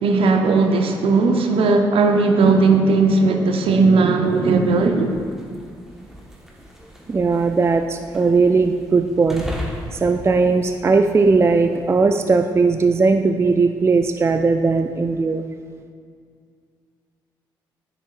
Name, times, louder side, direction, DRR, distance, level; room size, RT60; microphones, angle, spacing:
voice 1, 0.0-5.1, right 3 dB, 55° right, 4 dB, 0.7 m, -17 dB
sound 1, 4.1-12.0, left 1 dB, 5° right, 1.3 m, -38 dB
voice 2, 7.1-9.5 9.9-15.4, right 4 dB, 25° right, 7 dB, 0.4 m, -18 dB
9.1 x 7.0 x 2.5 m, 2.1 s
hypercardioid pair, 40°, 11 cm